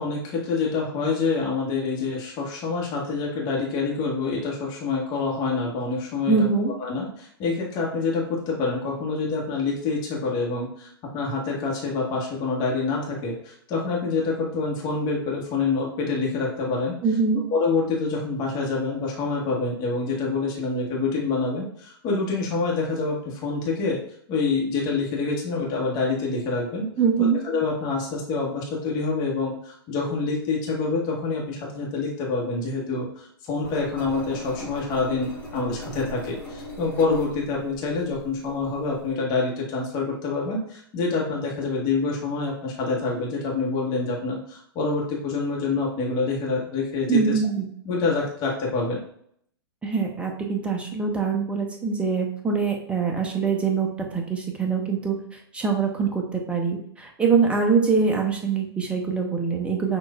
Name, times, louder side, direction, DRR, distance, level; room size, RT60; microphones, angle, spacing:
voice 1, 0.0-6.5 6.8-17.0 17.5-24.0 24.3-26.9 27.2-47.2 47.8-49.0, left 4 dB, 30° left, -3 dB, 1.1 m, -26 dB
voice 2, 6.3-6.7 17.0-17.4 27.0-27.4 47.1-47.7 49.8-55.2 55.5-60.0, right 5 dB, 10° right, 1 dB, 0.7 m, -23 dB
Engine, 33.6-39.1, equal, 5° left, 1.3 m, -39 dB
6.1 x 2.5 x 2.3 m, 0.67 s
figure-of-eight pair, 105°, 13 cm